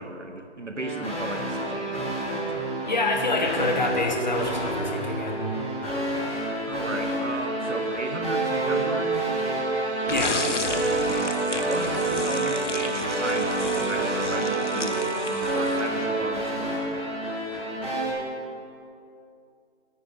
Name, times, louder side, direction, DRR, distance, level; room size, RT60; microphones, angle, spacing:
voice 1, 0.0-2.1 2.5-2.6 6.7-9.3 10.9-17.0, right 2 dB, 90° right, 6 dB, 1.3 m, -35 dB
sound 1, 0.8-18.1, right 1 dB, 5° left, 2.5 m, -30 dB
voice 2, 2.9-5.4 10.1-10.4, left 2 dB, 40° left, 3 dB, 1.2 m, -26 dB
sound 2, 6.3-16.9, right 4 dB, 65° right, 1.4 m, -30 dB
sound 3, 10.1-16.0, left 3 dB, 85° left, 0.9 m, -34 dB
9.8 x 9.3 x 5.8 m, 2.6 s
figure-of-eight pair, 160°, 35 cm